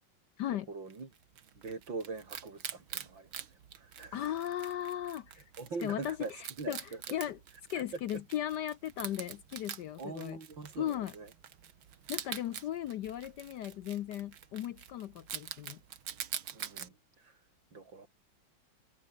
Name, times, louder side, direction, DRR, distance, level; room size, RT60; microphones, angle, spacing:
voice 1, 0.7-1.1 1.5-4.2 5.6-7.2 7.7-7.8 8.1-8.2 10.0-11.3 12.2-12.3 16.5-17.4 17.7-18.1, right 4 dB, 70° right, 4.9 m, -43 dB
Wild animals, 0.9-16.9, right 9 dB, 90° right, 2.4 m, -45 dB
voice 2, 4.1-5.4 5.8-6.8 7.1-7.4 7.7-10.4 10.8-11.1 12.1-15.8, left 11 dB, 65° left, 1.2 m, -37 dB
omnidirectional pair, 2.2 m